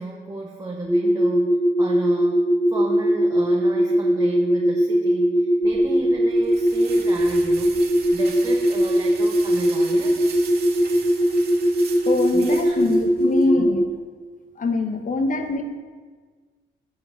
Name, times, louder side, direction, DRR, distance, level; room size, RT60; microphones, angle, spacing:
voice 1, 0.0-10.2 12.3-12.8 13.1-13.2 13.6-13.7, right 2 dB, 15° right, -1 dB, 1.1 m, -34 dB
sound 1, 0.9-13.8, equal, ahead, 0.6 m, -20 dB
sound 2, 5.6-13.5, right 6 dB, 55° right, 2.1 m, -40 dB
voice 2, 12.0-13.8 14.6-15.6, left 3 dB, 40° left, 6 dB, 1.2 m, -23 dB
8.9 x 4.8 x 7.1 m, 1.5 s
cardioid pair, 90°, 20 cm